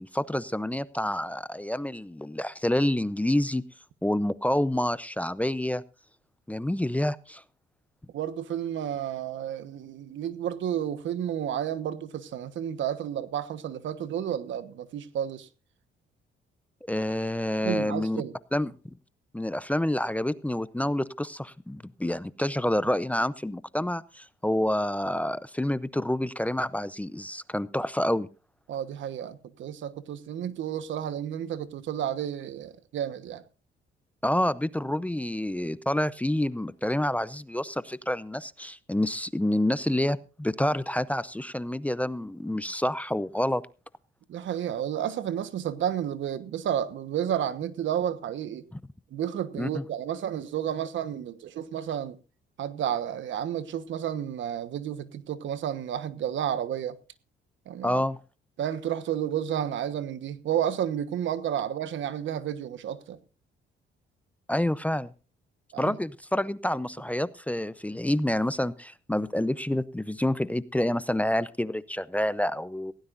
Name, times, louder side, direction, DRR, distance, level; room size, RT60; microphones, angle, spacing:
voice 1, 0.0-3.6 4.0-5.8 6.5-7.4 16.9-18.2 18.5-18.9 19.3-28.3 34.2-43.6 49.6-49.8 57.8-58.2 64.5-65.1 65.8-72.9, left 1 dB, 5° left, 0.6 m, -28 dB
voice 2, 8.1-15.5 17.6-18.3 28.7-33.4 44.3-48.6 49.1-52.2 52.6-57.0 57.7-58.0 58.6-63.2 65.7-66.0, right 10 dB, 70° right, 1.3 m, -31 dB
18.0 x 17.0 x 2.6 m
cardioid pair, 90°, 20 cm